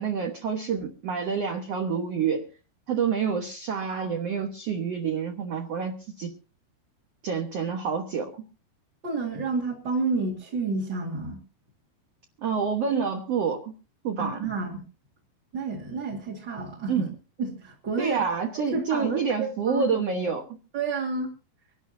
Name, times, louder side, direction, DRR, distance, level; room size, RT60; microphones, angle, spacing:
voice 1, 0.0-2.5 2.9-6.3 7.2-8.4 12.4-13.7 14.0-14.5 16.9-17.1 18.0-20.5, right 6 dB, 55° right, 4 dB, 1.8 m, -28 dB
voice 2, 9.0-11.4 14.2-14.8 15.5-17.1 17.4-18.2 18.6-20.0 20.7-21.3, right 3 dB, 35° right, -2 dB, 2.3 m, -30 dB
25.0 x 12.5 x 2.7 m, 0.33 s
omnidirectional pair, 4.7 m